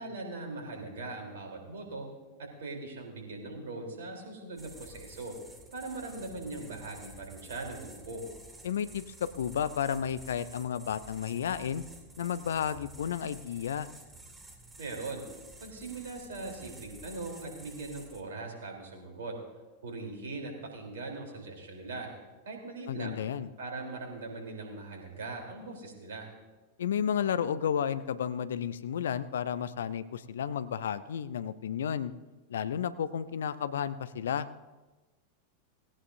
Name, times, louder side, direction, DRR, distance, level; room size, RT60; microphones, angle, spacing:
voice 1, 0.0-2.1 2.4-5.3 5.7-8.2 14.8-15.2 15.6-19.4 19.8-22.1 22.4-23.2 23.6-26.3, right 3 dB, 60° right, 2 dB, 3.5 m, -40 dB
sound 1, 4.6-18.2, right 1 dB, 10° right, 2.1 m, -51 dB
voice 2, 8.6-11.8 12.2-13.9 22.9-23.5 26.8-32.1 32.5-34.5, left 8 dB, 65° left, 14 dB, 0.6 m, -32 dB
18.5 x 17.5 x 2.7 m, 1.2 s
figure-of-eight pair, 90°, 0 cm